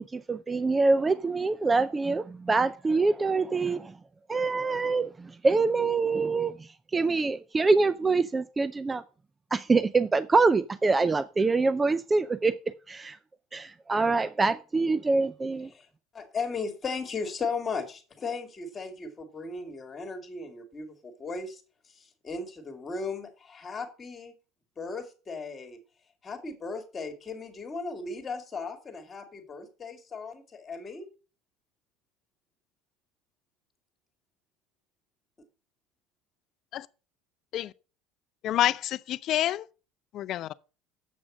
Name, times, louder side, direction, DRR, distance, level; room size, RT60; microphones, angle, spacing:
voice 1, 0.0-4.0 4.3-9.0 9.5-12.6 12.9-13.2 13.5-15.7, right 3 dB, 15° right, 0.4 m, -25 dB
voice 2, 16.1-21.6 21.9-24.3 24.8-25.8 26.2-31.1, left 4 dB, 25° left, 2.4 m, -36 dB
voice 3, 38.4-39.7 40.1-40.5, left 13 dB, 50° left, 0.5 m, -28 dB
7.7 x 6.2 x 6.2 m
supercardioid pair, 115°, 0 cm